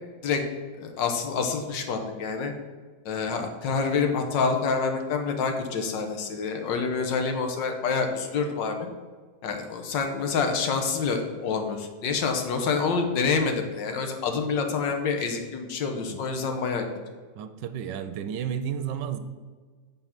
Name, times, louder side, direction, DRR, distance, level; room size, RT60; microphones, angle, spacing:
voice 1, 0.7-2.5 3.1-8.8 9.4-16.9, left 5 dB, 90° left, 4 dB, 1.6 m, -27 dB
voice 2, 17.4-19.2, right 8 dB, 85° right, 10 dB, 1.3 m, -32 dB
7.9 x 4.1 x 5.8 m, 1.5 s
omnidirectional pair, 1.9 m